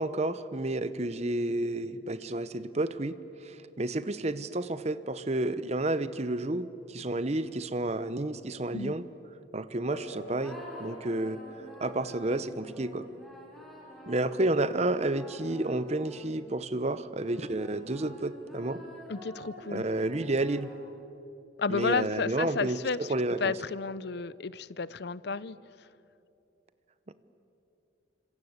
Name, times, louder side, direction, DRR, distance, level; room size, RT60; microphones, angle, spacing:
voice 1, 0.0-9.0 9.5-11.4 11.8-13.1 14.1-18.8 19.7-20.7 21.7-22.8 23.1-23.5 27.1-27.2, right 2 dB, 35° right, 14 dB, 0.9 m, -31 dB
sound 1, 9.9-17.9, equal, 85° left, 4.2 m, -51 dB
sound 2, 10.4-16.6 17.2-21.1, equal, ahead, 5.5 m, -49 dB
voice 2, 19.1-19.8 21.6-23.1 23.4-25.6, left 4 dB, 60° left, 18 dB, 0.6 m, -32 dB
28.0 x 26.0 x 8.1 m, 2.8 s
head